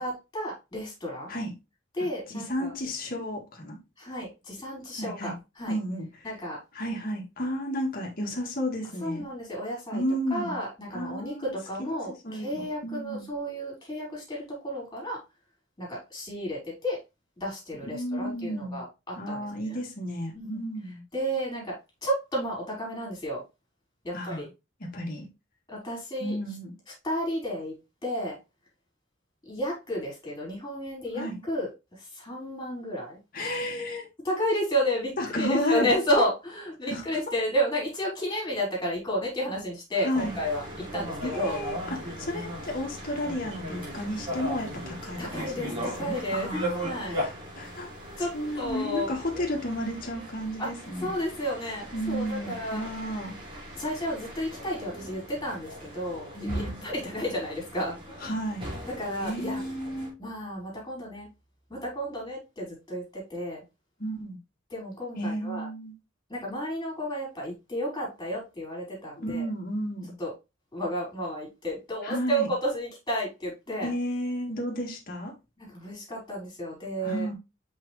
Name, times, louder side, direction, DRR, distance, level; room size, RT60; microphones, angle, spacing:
voice 1, 0.0-1.3 1.9-2.7 4.0-5.8 6.2-6.6 9.0-10.0 10.3-15.2 15.8-17.0 17.4-19.8 20.3-20.6 21.1-21.7 22.0-23.4 24.0-24.5 25.7-26.4 27.0-27.7 28.0-28.4 29.5-31.7 32.0-33.2 34.2-40.6 40.9-41.6 45.2-46.5 46.8-47.2 48.2-49.4 50.6-50.7 51.0-52.8 53.8-58.0 58.9-59.6 60.2-61.3 61.7-63.6 64.7-65.7 66.3-69.5 70.2-70.3 70.7-73.9 75.6-77.3, equal, 20° left, 4.1 m, -32 dB
voice 2, 2.3-3.8 5.0-5.3 5.7-6.1 6.7-9.2 9.9-10.6 10.9-11.5 12.2-13.3 17.9-18.8 19.2-21.0 24.1-24.5 24.9-25.3 26.2-26.7 31.2-31.4 33.3-34.1 35.2-35.9 36.9-37.0 40.0-40.4 41.2-47.9 48.2-51.1 51.9-53.4 56.3-56.9 58.2-58.7 59.2-60.1 64.0-64.4 65.2-65.9 69.2-70.1 72.0-72.5 73.8-75.3 77.0-77.3, equal, 50° left, 2.0 m, -32 dB
sound 1, 40.1-60.1, equal, 30° right, 3.2 m, -38 dB
5.9 x 5.3 x 3.3 m
head